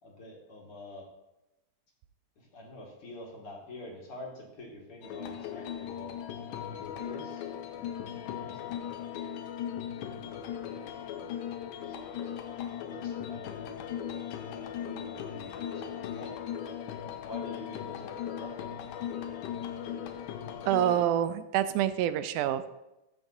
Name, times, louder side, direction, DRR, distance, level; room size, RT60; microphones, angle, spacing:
voice 1, 0.0-1.1 2.4-6.2 6.7-7.5 7.7-9.0 10.3-12.2 12.8-13.6 14.8-16.4 17.2-18.7 19.0-19.1, left 1 dB, 50° left, -2 dB, 2.1 m, -47 dB
sound 1, 5.0-21.1, left 9 dB, 80° left, 2.2 m, -38 dB
voice 2, 20.7-22.7, right 11 dB, 80° right, 11 dB, 1.9 m, -27 dB
14.0 x 7.1 x 2.7 m, 0.94 s
omnidirectional pair, 3.8 m